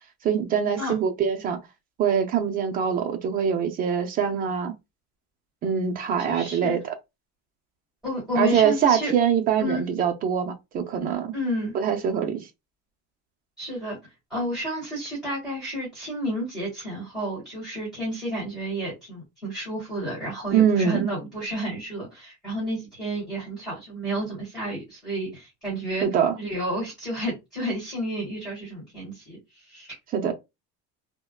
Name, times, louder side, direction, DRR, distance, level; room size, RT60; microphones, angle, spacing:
voice 1, 0.2-1.6 2.0-4.7 5.6-6.9 8.3-11.3 11.7-12.5 20.5-21.1 26.0-26.3 30.1-30.3, right 7 dB, 30° right, 0.5 m, -23 dB
voice 2, 6.2-6.8 8.0-9.1 9.6-9.8 11.3-11.7 13.6-14.0 14.3-26.1 26.4-29.9, equal, ahead, 1.6 m, -31 dB
3.5 x 2.2 x 2.2 m
cardioid pair, 180°, 31 cm